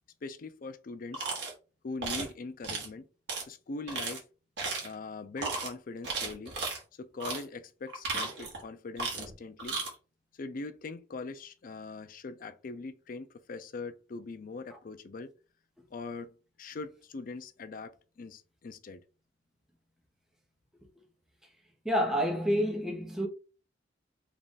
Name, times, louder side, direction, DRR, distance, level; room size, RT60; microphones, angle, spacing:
voice 1, 0.2-1.3 1.8-3.1 3.4-4.2 4.8-6.5 6.9-9.8 10.3-15.3 15.9-19.0, left 3 dB, 50° left, 0.4 m, -42 dB
sound 1, 1.1-1.5 2.0-2.3 2.6-2.9 3.3-3.4 3.9-4.2 4.6-4.9 5.4-5.7 6.0-6.8 7.2-7.4 7.9-8.6 9.0-9.3 9.6-9.9, right 4 dB, 70° right, 1.6 m, -34 dB
voice 2, 21.8-23.3, equal, 5° right, 0.9 m, -28 dB
3.5 x 2.5 x 3.9 m
head